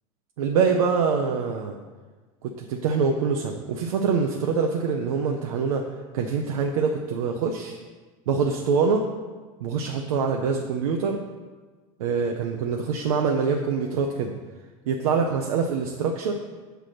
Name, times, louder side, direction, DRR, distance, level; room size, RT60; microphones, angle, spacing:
voice 1, 0.4-1.8 2.4-5.9 6.1-7.8 8.3-9.1 9.6-11.2 12.0-14.3 14.9-16.3, right 5 dB, 85° right, 2 dB, 0.6 m, -24 dB
6.2 x 3.4 x 5.8 m, 1.3 s
supercardioid pair, 115°, 18 cm